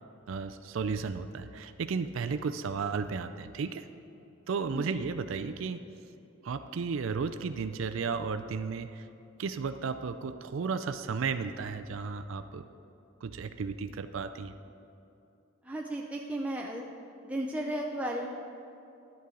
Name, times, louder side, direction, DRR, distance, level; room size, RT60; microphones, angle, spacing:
voice 1, 0.3-3.9 4.5-5.8 6.4-9.1 9.4-12.7 13.2-14.5, right 5 dB, 65° right, 10 dB, 0.4 m, -34 dB
voice 2, 15.6-16.8 17.2-18.3, right 1 dB, 5° right, -1 dB, 0.5 m, -34 dB
12.0 x 8.4 x 3.8 m, 2.8 s
head